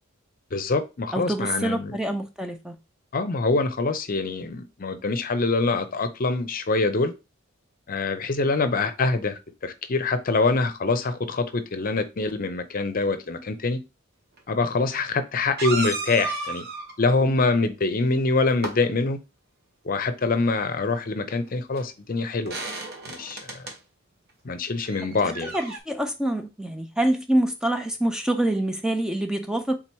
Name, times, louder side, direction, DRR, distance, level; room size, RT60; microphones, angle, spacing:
voice 1, 0.5-2.0 3.1-7.1 7.9-13.8 14.5-16.6 17.0-19.2 19.8-22.6 23.1-23.7 24.4-25.5, left 3 dB, 45° left, 0.6 m, -25 dB
voice 2, 1.1-2.8 25.2-29.8, right 1 dB, 5° right, 0.4 m, -26 dB
sound 1, 14.4-14.5 15.6-16.9 18.2-18.8 21.3-21.4 21.8-21.9 22.5-23.8 24.8-25.8, right 3 dB, 50° right, 1.1 m, -33 dB
3.8 x 2.9 x 4.5 m
head